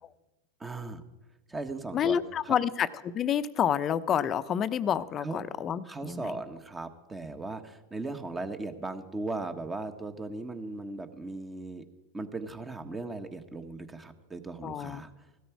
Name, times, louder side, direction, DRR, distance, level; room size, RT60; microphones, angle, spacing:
voice 1, 0.6-1.0 1.5-2.2 2.4-2.6 5.2-5.4 5.8-11.8 12.1-15.1, right 3 dB, 15° right, 8 dB, 1.3 m, -37 dB
voice 2, 1.9-6.3 14.6-15.0, left 9 dB, 35° left, 14 dB, 0.8 m, -29 dB
16.5 x 13.0 x 4.7 m, 1.1 s
hypercardioid pair, 100°, 0 cm